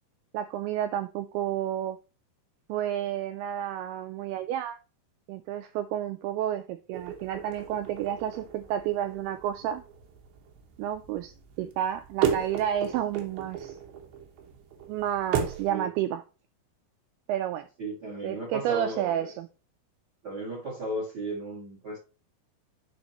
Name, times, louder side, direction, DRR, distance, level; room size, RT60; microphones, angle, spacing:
voice 1, 0.3-2.0 2.7-4.8 5.3-9.8 10.8-13.8 14.9-16.2 17.3-17.7 18.2-19.5, right 11 dB, 85° right, 2.2 m, -31 dB
sound 1, 6.9-15.7, right 8 dB, 70° right, 2.9 m, -35 dB
voice 2, 17.8-19.3 20.2-22.0, right 2 dB, 35° right, 1.9 m, -35 dB
10.5 x 4.3 x 3.0 m
omnidirectional pair, 5.0 m